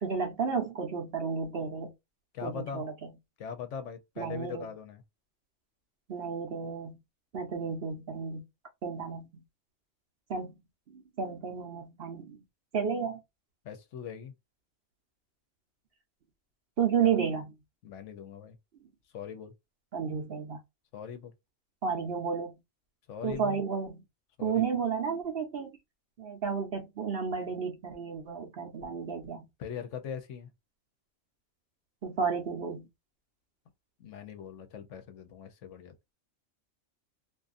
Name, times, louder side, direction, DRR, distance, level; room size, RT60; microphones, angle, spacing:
voice 1, 0.0-1.9 2.4-3.1 4.2-4.7 6.1-7.0 7.3-8.5 8.8-9.4 10.3-10.6 10.9-12.4 12.7-13.2 16.8-17.5 19.9-20.6 21.8-22.5 23.2-24.0 24.4-25.7 26.2-29.5 32.0-32.9, right 6 dB, 55° right, 0.8 m, -32 dB
voice 2, 2.3-2.8 3.4-5.0 13.6-14.3 17.0-17.1 17.8-18.6 19.1-19.5 20.9-21.3 23.1-23.6 24.4-24.7 29.6-30.5 34.0-36.1, left 7 dB, 70° left, 0.9 m, -41 dB
2.6 x 2.4 x 2.4 m
omnidirectional pair, 1.4 m